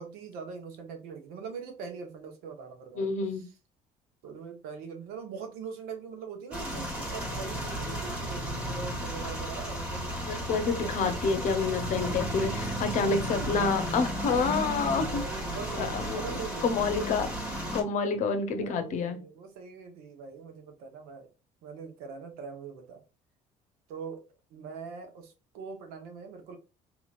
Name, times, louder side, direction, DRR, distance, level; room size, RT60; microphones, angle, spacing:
voice 1, 0.0-3.5 4.2-11.3 13.8-14.2 14.7-17.1 18.6-21.3 21.6-23.0 23.9-24.2 24.5-26.6, right 5 dB, 90° right, 1.0 m, -42 dB
voice 2, 3.0-3.4 10.3-15.2 15.8-16.2 16.6-17.3 17.7-19.2, left 4 dB, 55° left, 0.7 m, -28 dB
sound 1, 6.5-17.8, equal, 10° right, 1.2 m, -34 dB
3.8 x 3.0 x 2.4 m
cardioid pair, 140°, 15 cm